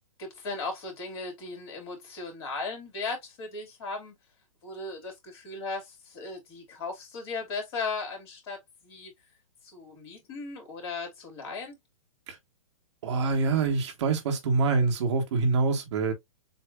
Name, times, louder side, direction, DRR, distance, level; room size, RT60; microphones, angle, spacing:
voice 1, 0.2-4.1 4.6-9.1 9.7-11.8, left 3 dB, 50° left, 2.8 m, -37 dB
voice 2, 13.0-16.1, right 4 dB, 55° right, 1.4 m, -25 dB
7.0 x 2.6 x 2.3 m
hypercardioid pair, 120°, 18 cm